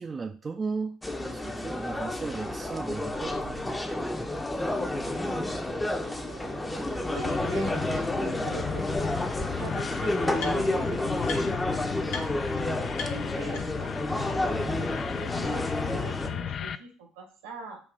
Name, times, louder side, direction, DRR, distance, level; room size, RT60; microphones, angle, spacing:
voice 1, 0.0-3.8, right 4 dB, 30° right, 6 dB, 0.4 m, -36 dB
sound 1, 1.0-16.3, left 1 dB, 15° left, 0.7 m, -30 dB
voice 2, 6.0-8.8 9.6-11.6 11.9-12.2 13.0-17.8, right 3 dB, 80° right, 3 dB, 1.3 m, -42 dB
sound 2, 6.9-7.0 7.6-7.7 9.0-9.1 9.3-10.9 11.2-11.7 12.1-12.2 12.5-12.6 12.9-14.0, left 4 dB, 70° left, 0.9 m, -40 dB
sound 3, 7.1-16.8, left 8 dB, 45° left, 0.3 m, -35 dB
4.8 x 2.6 x 3.7 m, 0.40 s
hypercardioid pair, 60°, 0 cm